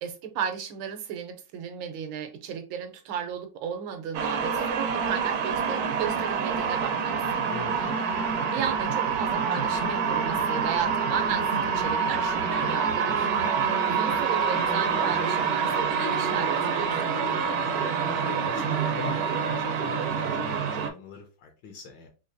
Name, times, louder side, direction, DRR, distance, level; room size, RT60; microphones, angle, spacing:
voice 1, 0.0-7.4 7.8-7.9 8.4-17.1, right 8 dB, 85° right, 1.5 m, -35 dB
sound 1, 4.1-20.9, right 6 dB, 70° right, 0.9 m, -26 dB
voice 2, 7.2-7.8 17.1-17.7 18.0-22.1, left 6 dB, 75° left, 1.4 m, -44 dB
4.0 x 2.7 x 2.6 m
omnidirectional pair, 2.1 m